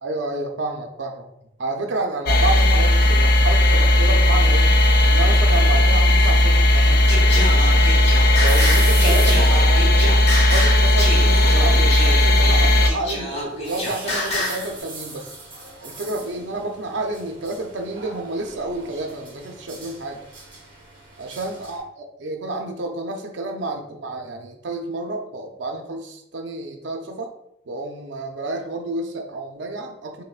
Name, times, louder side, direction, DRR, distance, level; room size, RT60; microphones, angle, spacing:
voice 1, 0.0-1.3 1.6-4.7 5.0-7.9 8.4-10.2 10.5-15.3 15.8-20.2 21.2-27.3 27.7-30.2, right 2 dB, 75° right, 4 dB, 0.5 m, -30 dB
sound 1, 2.3-12.9, left 1 dB, 55° left, 0.4 m, -16 dB
sound 2, 2.8-21.8, right 3 dB, 25° right, 1.2 m, -40 dB
Singing, 7.1-14.7, left 1 dB, 35° left, 0.8 m, -27 dB
5.4 x 2.1 x 2.4 m, 0.80 s
head